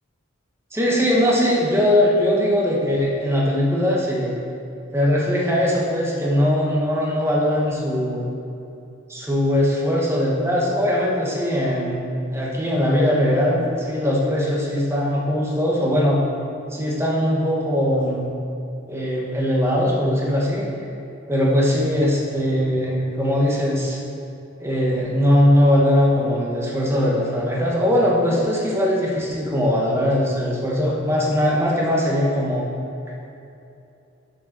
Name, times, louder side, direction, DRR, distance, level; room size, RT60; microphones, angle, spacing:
voice 1, 0.7-4.4 4.9-8.3 9.1-16.2 16.7-18.3 18.9-20.7 21.3-24.0 24.6-32.7, equal, 15° right, -4 dB, 1.3 m, -20 dB
7.2 x 6.6 x 6.0 m, 2.7 s
head